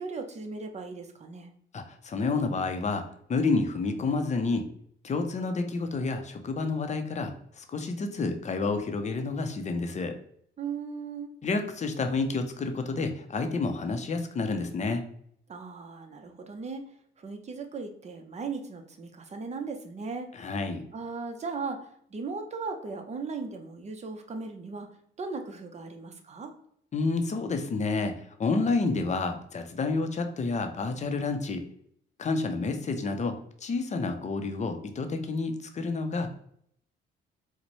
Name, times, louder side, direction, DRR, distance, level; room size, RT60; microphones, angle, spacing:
voice 1, 0.0-1.5 10.6-11.3 15.5-16.8 17.2-20.3 20.9-24.9 25.2-26.5, right 4 dB, 35° right, 5 dB, 0.6 m, -37 dB
voice 2, 1.7-3.0 3.3-4.7 5.0-10.2 11.4-15.0 20.4-20.8 26.9-28.1 28.4-31.6 32.2-33.3 33.6-36.3, left 3 dB, 35° left, 6 dB, 0.5 m, -29 dB
4.2 x 2.1 x 3.0 m, 0.68 s
cardioid pair, 90°, 20 cm